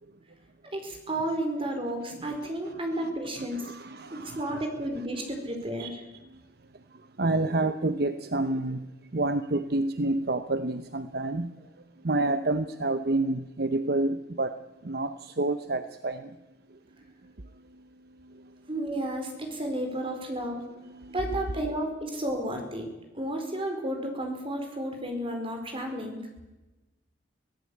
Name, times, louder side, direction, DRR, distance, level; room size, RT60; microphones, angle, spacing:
voice 1, 0.7-3.6 4.1-6.0 18.7-20.6 21.1-22.9 23.1-26.2, right 1 dB, 30° right, 4.8 m, -32 dB
voice 2, 2.2-2.5 2.9-3.1 3.4-4.6 5.8-5.9 7.2-8.9 9.1-11.6 12.0-16.3 20.8-21.4, right 2 dB, 55° right, 0.8 m, -29 dB
25.0 x 17.0 x 8.6 m
head